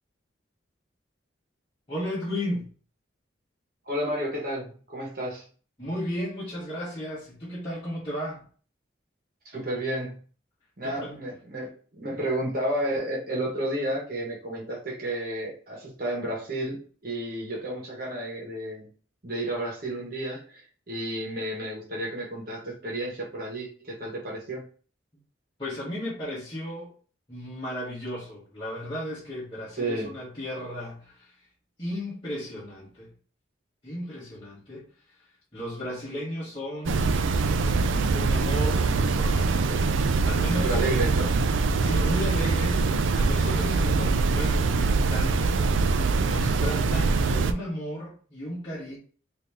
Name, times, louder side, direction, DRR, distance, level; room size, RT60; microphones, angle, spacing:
voice 1, 1.9-2.7 5.8-8.4 10.8-11.2 25.6-26.9 27.3-31.5 31.8-33.1 33.8-34.9 35.5-37.1 38.1-39.6 40.0-41.0 41.6-42.8 43.1-49.0, equal, 25° left, -9 dB, 1.2 m, -35 dB
voice 2, 3.8-5.5 9.5-10.2 10.8-18.9 19.2-24.7 29.8-30.1 40.6-41.3, right 1 dB, 45° right, -2 dB, 1.2 m, -31 dB
sound 1, 36.9-47.5, right 4 dB, 75° right, 0.4 m, -23 dB
3.9 x 2.7 x 3.4 m, 0.41 s
head